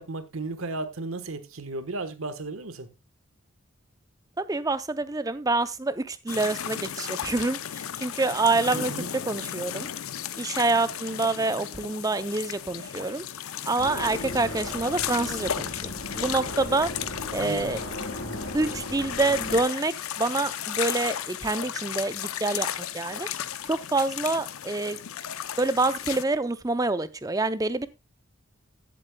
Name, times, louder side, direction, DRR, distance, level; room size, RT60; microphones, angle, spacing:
voice 1, 0.0-2.9 8.7-9.1 17.4-17.9, right 3 dB, 80° right, 1.2 m, -35 dB
voice 2, 4.4-9.9 10.4-13.2 13.6-15.7 16.2-16.9 17.3-17.8 18.5-23.3 23.7-25.0 25.6-27.9, right 3 dB, 15° right, 0.5 m, -27 dB
sound 1, 6.3-26.2, left 9 dB, 85° left, 0.6 m, -35 dB
sound 2, 13.8-19.6, left 1 dB, 65° left, 3.5 m, -37 dB
15.0 x 7.8 x 2.2 m
head